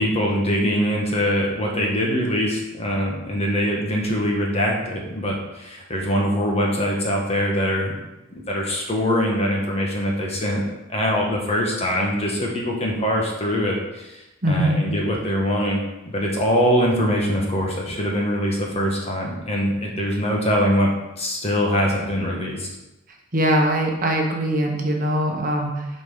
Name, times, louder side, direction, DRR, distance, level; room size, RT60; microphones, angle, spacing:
voice 1, 0.0-7.9 8.5-10.6 10.9-14.2 14.5-20.9 21.2-22.7, equal, 30° left, -1 dB, 1.5 m, -23 dB
voice 2, 14.4-14.8 23.3-25.9, right 1 dB, 40° right, 1 dB, 1.1 m, -21 dB
8.1 x 4.4 x 5.6 m, 0.98 s
head